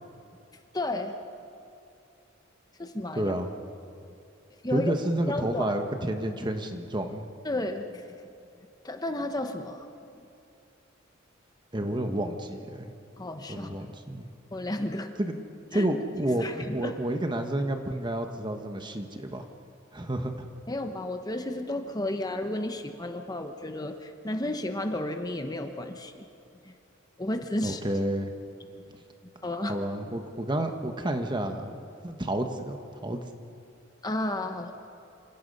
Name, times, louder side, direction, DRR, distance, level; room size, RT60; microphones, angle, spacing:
voice 1, 0.7-1.1 2.8-3.3 4.6-4.9 5.3-5.7 7.4-8.2 8.8-9.8 10.1-10.3 13.2-13.7 14.5-15.2 15.7-15.9 16.4-17.0 20.7-26.2 26.6-26.7 27.2-27.8 29.4-29.7 34.0-34.7, left 1 dB, 20° left, 6 dB, 1.1 m, -32 dB
voice 2, 3.1-3.5 4.7-7.3 11.7-12.9 13.5-14.3 15.2-15.4 15.7-19.4 19.9-20.5 27.6-28.3 29.7-33.3, right 1 dB, 25° right, 5 dB, 1.3 m, -30 dB
27.5 x 26.5 x 5.5 m, 2.6 s
head